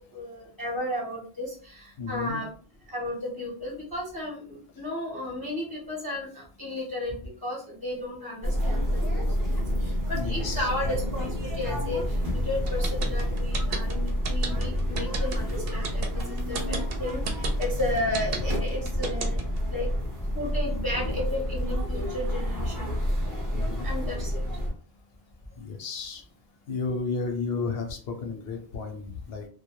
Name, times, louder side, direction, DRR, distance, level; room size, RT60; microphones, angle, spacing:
voice 1, 0.0-2.5 2.9-19.9 20.3-22.9 23.8-24.3, left 1 dB, 30° left, -4 dB, 0.5 m, -34 dB
voice 2, 2.0-2.4 10.1-10.7 23.5-23.9 25.6-26.2 26.7-29.5, left 4 dB, 75° left, 4 dB, 0.8 m, -33 dB
sound 1, 8.4-24.7, equal, 25° right, 0.5 m, -29 dB
sound 2, 12.7-19.6, right 5 dB, 70° right, 0.7 m, -33 dB
2.2 x 2.1 x 2.8 m, 0.44 s
omnidirectional pair, 1.1 m